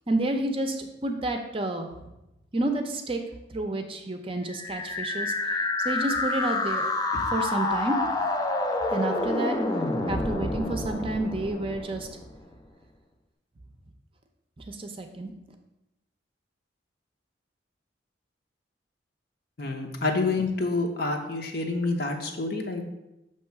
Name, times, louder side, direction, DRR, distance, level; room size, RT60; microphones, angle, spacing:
voice 1, 0.1-1.9 2.5-3.2 3.5-8.0 8.9-9.6 10.1-12.1 14.7-15.3, right 2 dB, 30° right, 4 dB, 0.6 m, -30 dB
sound 1, 4.5-12.4, left 2 dB, 20° left, 0.5 m, -28 dB
voice 2, 19.6-22.9, left 3 dB, 55° left, 2 dB, 0.8 m, -28 dB
6.4 x 3.1 x 5.8 m, 0.93 s
head